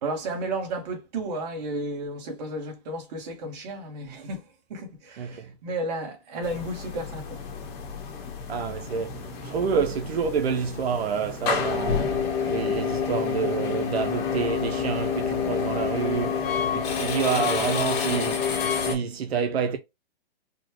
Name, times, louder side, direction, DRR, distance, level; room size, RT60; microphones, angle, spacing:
voice 1, 0.0-4.4 4.7-7.4, right 2 dB, 40° right, 1.4 m, -33 dB
voice 2, 5.2-5.5 8.5-9.1 9.4-12.1 12.5-19.8, right 6 dB, 85° right, 0.7 m, -28 dB
sound 1, 6.4-18.9, left 6 dB, 25° left, 0.9 m, -28 dB
4.3 x 2.2 x 3.0 m
hypercardioid pair, 160°, 30 cm